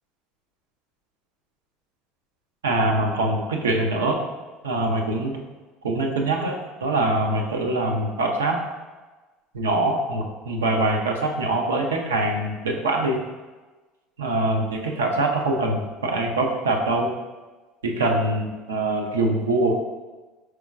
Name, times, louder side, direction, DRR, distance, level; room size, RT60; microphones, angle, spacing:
voice 1, 2.6-4.2 4.6-5.4 5.8-6.6 6.8-8.6 9.5-13.2 14.2-17.1 17.8-19.7, right 2 dB, 80° right, 2 dB, 0.5 m, -23 dB
4.6 x 4.4 x 2.4 m, 1.2 s
figure-of-eight pair, 65°, 0 cm